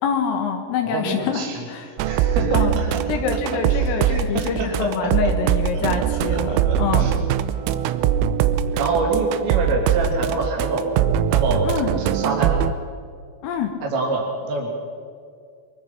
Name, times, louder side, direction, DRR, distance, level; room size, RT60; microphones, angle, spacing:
voice 1, 0.0-2.2 2.5-2.8 3.1-7.1 11.6-11.9 13.4-13.8, left 7 dB, 80° left, 4 dB, 4.1 m, -26 dB
voice 2, 0.8-3.1 3.3-5.1 5.7-7.1 8.7-11.0 11.3-12.7 13.8-14.7, right 2 dB, 60° right, -1 dB, 5.7 m, -27 dB
sound 1, 2.0-12.7, right 9 dB, 90° right, 3.5 m, -22 dB
23.5 x 23.5 x 6.0 m, 2.3 s
omnidirectional pair, 5.9 m